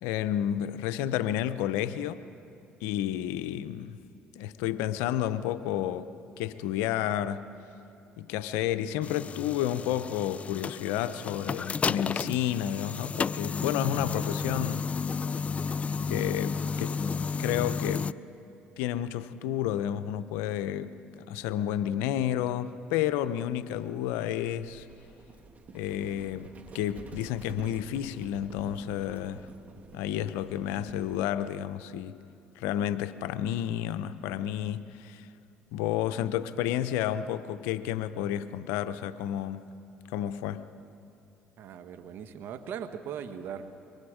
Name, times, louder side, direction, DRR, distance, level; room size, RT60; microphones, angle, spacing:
voice 1, 0.0-2.2 2.8-4.0 4.4-6.1 6.4-7.5 8.2-14.9 16.1-17.0 17.4-18.1 18.8-24.9 25.7-29.5 29.9-32.2 32.6-35.3 35.7-39.6 40.1-40.6, left 11 dB, 85° left, 0.7 m, -31 dB
sound 1, 9.0-18.1, left 5 dB, 35° left, 0.4 m, -32 dB
Livestock farm animals working animals, 24.6-31.2, right 4 dB, 40° right, 2.0 m, -48 dB
voice 2, 41.6-43.7, right 8 dB, 65° right, 1.3 m, -39 dB
25.5 x 23.5 x 5.0 m
supercardioid pair, 75°, 4 cm